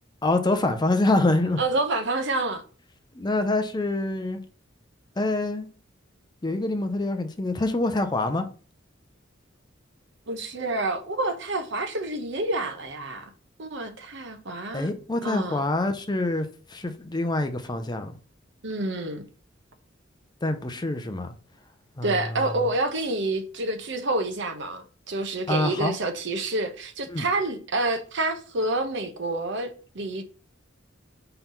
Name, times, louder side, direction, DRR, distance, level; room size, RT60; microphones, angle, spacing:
voice 1, 0.2-1.6 3.1-4.4 5.2-5.7 6.4-8.4 14.7-18.2 20.4-21.3 22.0-22.5 25.5-25.9 27.1-27.3, left 2 dB, 20° left, 0.6 m, -26 dB
voice 2, 1.6-2.6 10.3-13.3 13.6-14.9 15.2-15.6 18.6-19.2 22.0-30.2, right 2 dB, 65° right, 0.9 m, -28 dB
4.5 x 3.9 x 5.4 m
head